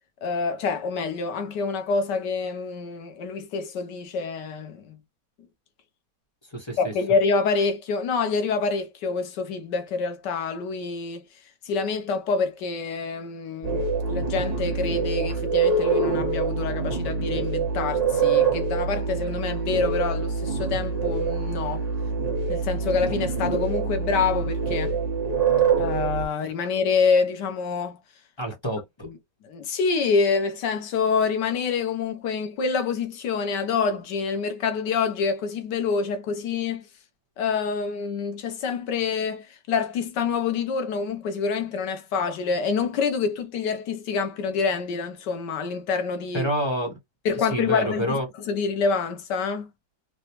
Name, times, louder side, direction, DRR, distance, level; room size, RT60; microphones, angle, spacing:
voice 1, 0.2-5.0 6.8-11.2 11.6-21.8 22.5-25.0 25.8-28.0 29.0-29.2 29.4-36.9 37.4-46.5 47.2-48.2 48.5-49.7, left 5 dB, 80° left, 1.5 m, -26 dB
voice 2, 6.5-6.9 28.4-29.1 46.3-47.0 47.3-48.3, equal, 20° left, 1.0 m, -28 dB
sound 1, 13.6-26.2, right 5 dB, 30° right, 0.9 m, -25 dB
3.9 x 2.2 x 2.9 m
omnidirectional pair, 1.9 m